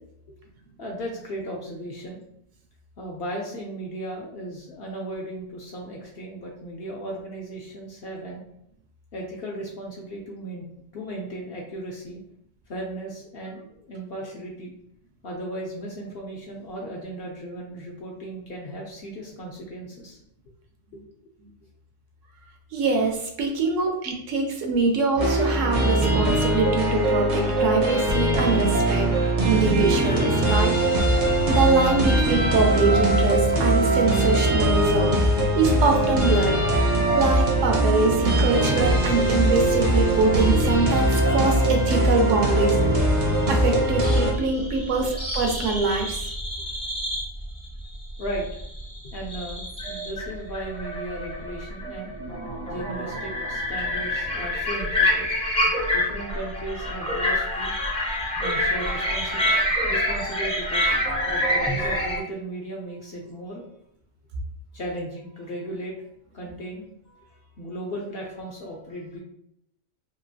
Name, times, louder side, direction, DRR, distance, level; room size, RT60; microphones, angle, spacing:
voice 1, 0.8-2.2 3.0-8.4 9.1-10.7 10.9-12.2 12.7-14.7 15.2-20.2 20.9-21.0 46.6-46.9 48.2-48.6 49.0-52.1 52.7-55.3 55.9-57.7 58.4-63.7 64.7-66.0 66.3-69.2, right 1 dB, 60° left, -2 dB, 0.7 m, -36 dB
voice 2, 22.7-30.7 31.5-36.6 37.1-42.8 43.5-46.2, right 3 dB, 70° right, 2 dB, 0.9 m, -24 dB
sound 1, 25.2-44.3, right 1 dB, 45° right, 0.6 m, -21 dB
sound 2, 44.0-62.2, left 1 dB, 10° left, 0.4 m, -27 dB
2.9 x 2.4 x 2.6 m, 0.74 s
omnidirectional pair, 1.4 m